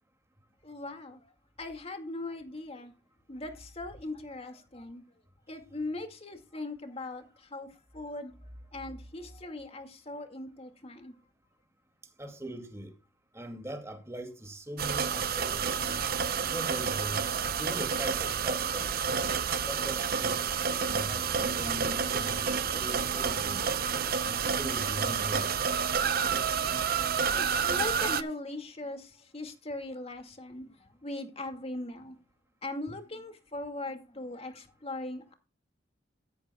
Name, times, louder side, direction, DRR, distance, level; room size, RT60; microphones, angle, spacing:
voice 1, 0.6-1.3 1.6-2.9 3.3-5.0 5.5-11.1 27.4-32.2 32.6-35.3, left 2 dB, 35° left, 2.2 m, -40 dB
voice 2, 12.2-12.9 13.3-16.0 16.5-17.2 17.6-18.9 19.7-20.4 20.9-23.7 24.2-25.5, right 1 dB, 15° right, 2.5 m, -40 dB
sound 1, 14.8-28.2, right 6 dB, 55° right, 0.7 m, -29 dB
sound 2, 20.7-24.9, equal, 60° left, 2.1 m, -51 dB
13.5 x 11.5 x 2.3 m
head